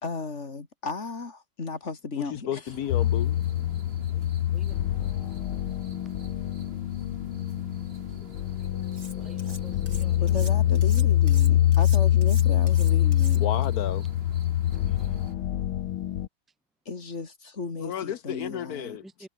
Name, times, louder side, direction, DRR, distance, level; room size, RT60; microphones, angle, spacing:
voice 1, 0.0-2.7 7.3-7.4 8.6-8.8 10.2-13.5 16.9-19.0, left 4 dB, 35° left, 2.9 m, -35 dB
voice 2, 2.5-3.4 13.4-14.0 17.8-19.0, left 10 dB, 60° left, 1.1 m, -32 dB
sound 1, 2.7-15.3, right 4 dB, 30° right, 2.2 m, -48 dB
sound 2, 2.9-16.3, left 12 dB, 80° left, 1.8 m, -25 dB
Cutlery silverware, 8.9-9.6 9.9-13.7, right 2 dB, 50° right, 8.0 m, -44 dB
voice 3, 9.2-10.5 14.9-15.1 19.0-19.3, right 1 dB, ahead, 1.7 m, -50 dB
omnidirectional pair, 2.3 m